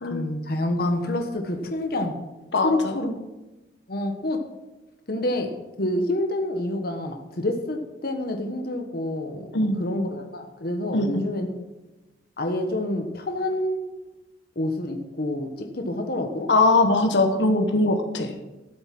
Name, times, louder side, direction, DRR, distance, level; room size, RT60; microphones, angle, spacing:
voice 1, 0.1-2.1 2.6-3.1 3.9-4.4 5.1-5.5 5.8-11.5 12.4-13.8 14.5-16.5, left 1 dB, 55° left, 4 dB, 1.3 m, -27 dB
voice 2, 2.5-3.1 9.5-9.8 10.9-11.3 16.5-18.3, left 2 dB, 75° left, 5 dB, 1.3 m, -21 dB
13.0 x 8.0 x 6.1 m, 1.1 s
head